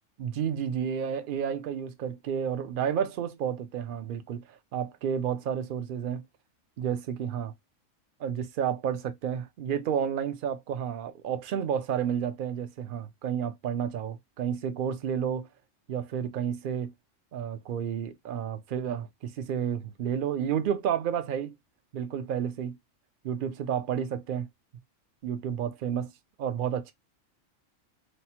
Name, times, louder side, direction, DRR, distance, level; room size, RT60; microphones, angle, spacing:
voice 1, 0.2-6.2 6.8-7.5 8.2-15.5 15.9-16.9 17.3-21.6 21.9-22.8 23.2-24.5 25.2-26.1 26.4-26.9, right 8 dB, 60° right, 0.5 m, -31 dB
2.9 x 2.0 x 2.8 m
omnidirectional pair, 1.3 m